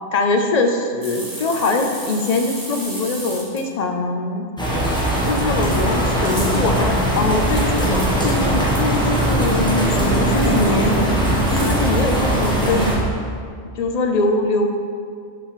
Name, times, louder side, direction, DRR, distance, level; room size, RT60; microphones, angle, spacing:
voice 1, 0.1-4.4 5.3-11.0 11.5-13.0 13.8-14.7, left 2 dB, 40° left, 4 dB, 0.7 m, -22 dB
sound 1, 1.0-3.6 6.2-6.6 7.6-8.3 9.9-10.1 11.6-11.7, right 1 dB, 20° right, 1.4 m, -33 dB
sound 2, 4.6-13.0, right 1 dB, 5° left, 1.3 m, -19 dB
6.2 x 4.9 x 6.6 m, 2.2 s
omnidirectional pair, 1.2 m